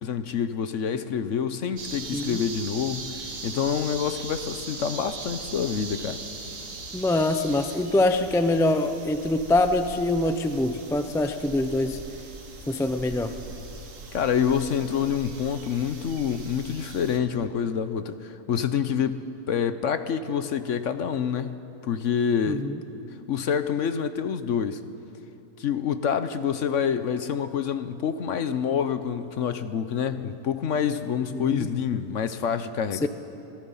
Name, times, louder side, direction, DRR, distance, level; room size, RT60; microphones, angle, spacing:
voice 1, 0.0-6.2 14.1-21.6 21.8-22.7 23.3-24.8 25.6-33.1, left 7 dB, 60° left, 11 dB, 1.0 m, -27 dB
sound 1, 1.8-17.2, right 3 dB, 60° right, 1.8 m, -40 dB
voice 2, 6.9-12.0 12.7-13.4 22.5-22.8 31.3-31.7 33.0-33.1, left 2 dB, 5° left, 8 dB, 0.3 m, -24 dB
26.5 x 18.5 x 5.6 m, 2.8 s
omnidirectional pair, 1.6 m